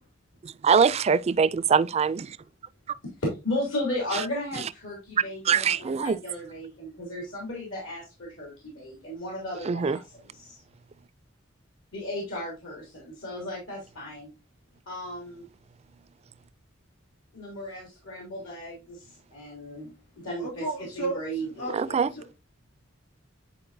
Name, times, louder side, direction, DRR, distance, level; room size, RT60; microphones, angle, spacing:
voice 1, 0.4-2.4 5.5-6.2 9.7-10.0 21.7-22.1, right 6 dB, 35° right, 0.3 m, -23 dB
voice 2, 3.0-10.6 11.9-14.3 14.9-15.4 17.3-19.9 20.2-22.2, left 1 dB, 75° left, 3.0 m, -35 dB
voice 3, 20.4-21.2 21.6-21.7 22.2-22.3, right 2 dB, 55° left, 3.2 m, -32 dB
9.8 x 4.5 x 2.6 m
head